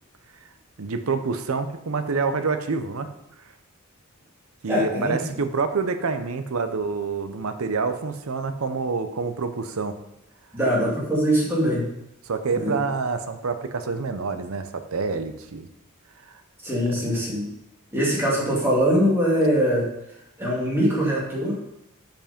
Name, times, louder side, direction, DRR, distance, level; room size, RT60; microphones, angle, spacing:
voice 1, 0.8-3.1 4.6-10.0 12.2-15.7 16.2-16.3 17.0-17.3, right 4 dB, 75° right, 8 dB, 0.7 m, -27 dB
voice 2, 4.7-5.3 10.5-11.9 12.5-12.8 16.6-17.5 17.9-19.9 20.4-21.6, equal, 10° right, -5 dB, 2.3 m, -22 dB
7.5 x 5.3 x 5.1 m, 0.85 s
head